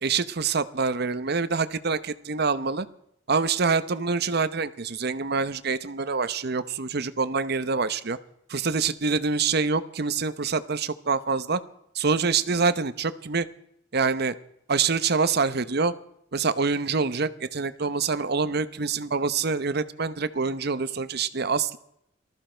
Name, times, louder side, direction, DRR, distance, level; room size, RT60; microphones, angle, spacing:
voice 1, 0.0-2.9 3.3-8.2 8.5-11.6 11.9-13.5 13.9-14.3 14.7-15.9 16.3-21.8, right 4 dB, 55° right, 13 dB, 0.9 m, -26 dB
19.5 x 14.0 x 4.5 m, 0.74 s
head